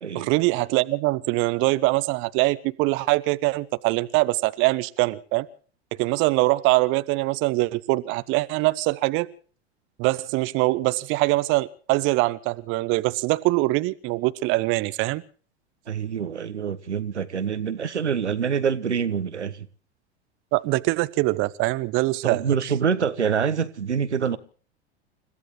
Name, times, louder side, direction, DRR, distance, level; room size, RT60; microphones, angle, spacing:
voice 1, 0.1-5.5 6.0-9.3 10.0-15.2 20.5-22.4, right 21 dB, 35° right, 0.8 m, -23 dB
voice 2, 15.9-19.7 22.2-24.4, right 7 dB, 80° right, 1.2 m, -26 dB
30.0 x 15.5 x 3.1 m
figure-of-eight pair, 85°, 34 cm